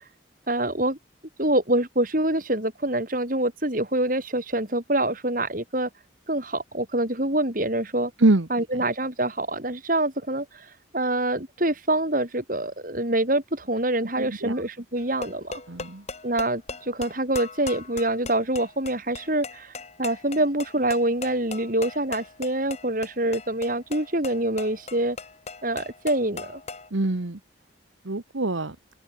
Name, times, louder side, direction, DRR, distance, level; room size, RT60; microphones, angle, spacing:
voice 1, 0.5-1.0 1.4-5.9 6.3-8.1 8.5-10.7 10.9-15.6 16.2-19.7 20.0-25.2 25.6-26.6, right 1 dB, 45° right, 4.5 m, -25 dB
voice 2, 8.2-8.8 14.2-14.6 15.7-16.0 26.9-27.4 28.0-28.8, right 2 dB, 80° right, 1.3 m, -24 dB
sound 1, 15.0-26.9, left 4 dB, 35° left, 2.1 m, -39 dB
head